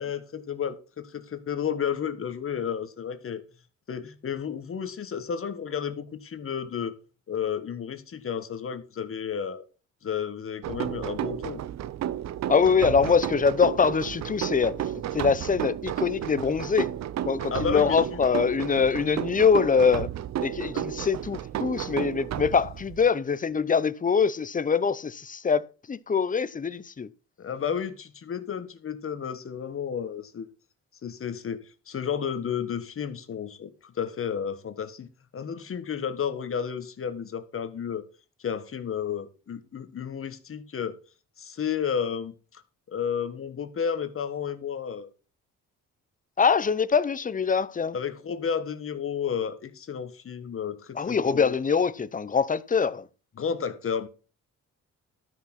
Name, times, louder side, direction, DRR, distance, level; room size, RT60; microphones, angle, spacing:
voice 1, 0.0-3.4 3.9-6.9 7.3-9.7 10.0-11.6 17.5-18.0 20.7-20.8 27.4-30.5 31.0-35.1 35.3-38.0 38.4-41.0 41.4-42.6 42.9-45.1 47.9-51.5 53.4-54.1, left 7 dB, 45° left, 1.5 m, -32 dB
sound 1, 10.6-23.1, right 11 dB, 60° right, 0.7 m, -33 dB
voice 2, 12.5-16.9 17.2-20.1 20.4-27.1 46.4-48.0 50.9-53.1, left 6 dB, 25° left, 0.8 m, -24 dB
12.5 x 6.0 x 6.0 m
cardioid pair, 90°, 30 cm